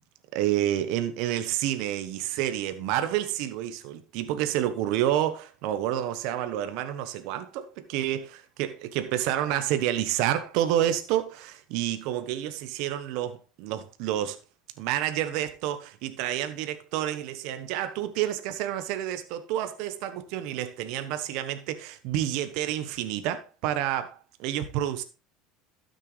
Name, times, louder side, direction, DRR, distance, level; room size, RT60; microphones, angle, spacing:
voice 1, 0.3-14.4 14.8-25.0, right 12 dB, 70° right, 1.0 m, -29 dB
12.0 x 6.5 x 3.3 m
supercardioid pair, 120°, 0 cm